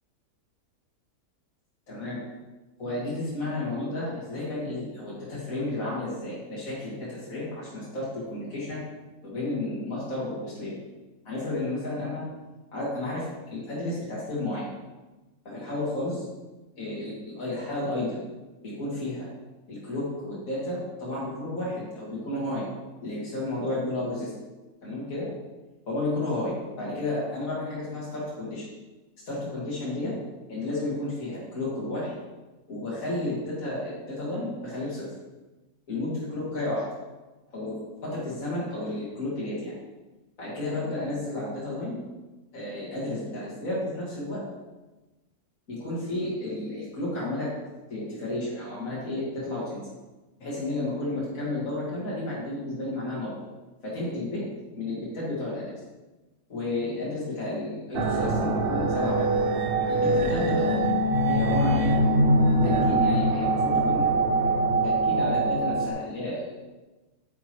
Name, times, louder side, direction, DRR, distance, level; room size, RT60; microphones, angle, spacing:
voice 1, 1.9-2.2 2.8-8.8 9.2-10.7 11.3-12.2 12.7-14.6 15.4-16.2 16.8-18.2 18.6-19.3 19.7-22.7 23.0-24.3 24.8-25.3 25.9-28.7 29.3-30.1 30.5-32.2 32.7-35.1 35.9-36.9 37.5-39.7 40.4-42.0 42.5-44.4 45.7-47.5 47.9-49.8 50.4-53.3 53.8-54.4 54.8-55.7 56.5-59.2 59.8-60.8 61.3-61.9 62.6-64.1 64.8-66.5, left 2 dB, 60° left, -8 dB, 2.4 m, -32 dB
sound 1, 57.9-65.9, right 1 dB, 55° right, 0.6 m, -23 dB
8.9 x 6.0 x 3.0 m, 1.1 s
omnidirectional pair, 1.6 m